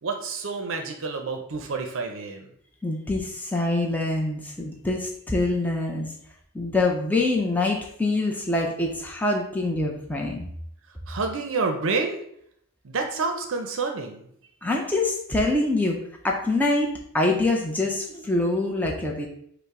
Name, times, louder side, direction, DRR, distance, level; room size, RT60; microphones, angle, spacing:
voice 1, 0.0-2.5 11.1-12.2 12.8-14.3, right 4 dB, 60° right, 4 dB, 0.5 m, -28 dB
voice 2, 2.8-6.1 6.5-10.5 14.6-19.3, left 2 dB, 5° left, -1 dB, 0.5 m, -25 dB
5.4 x 2.1 x 4.7 m, 0.69 s
head